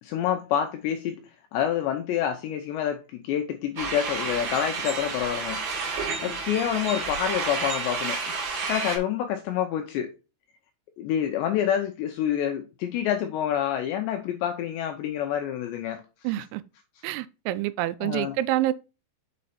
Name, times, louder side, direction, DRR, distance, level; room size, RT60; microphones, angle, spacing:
voice 1, 0.0-1.2 1.5-5.6 6.2-10.1 11.0-16.0 18.0-18.4, left 10 dB, 85° left, 2.5 m, -27 dB
sound 1, 3.8-9.0, right 4 dB, 55° right, 3.9 m, -30 dB
voice 2, 16.2-16.6 17.0-18.7, right 15 dB, 85° right, 3.2 m, -27 dB
7.4 x 5.4 x 4.2 m
omnidirectional pair, 5.9 m